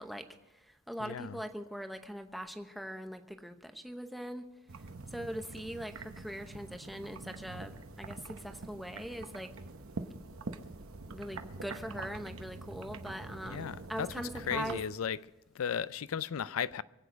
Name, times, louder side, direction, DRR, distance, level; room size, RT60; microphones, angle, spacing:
voice 1, 0.0-4.5 4.8-9.5 11.1-14.8, equal, ahead, 0.8 m, -41 dB
voice 2, 1.0-1.4 13.5-14.1 14.5-15.2 15.6-16.8, left 7 dB, 75° left, 0.4 m, -35 dB
sound 1, 4.7-14.8, right 3 dB, 75° right, 0.9 m, -45 dB
24.0 x 8.4 x 5.1 m
head